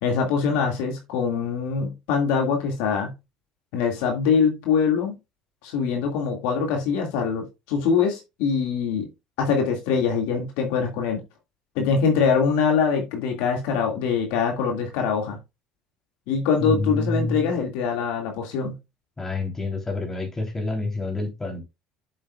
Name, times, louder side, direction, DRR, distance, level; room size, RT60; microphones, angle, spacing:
voice 1, 0.0-3.1 3.7-5.1 5.6-9.1 9.4-11.2 11.8-15.4 16.3-18.8, left 6 dB, 80° left, 2.1 m, -23 dB
voice 2, 16.6-17.6 19.2-21.6, left 2 dB, 20° left, 3.3 m, -28 dB
7.9 x 7.8 x 2.3 m
supercardioid pair, 90°, 2 cm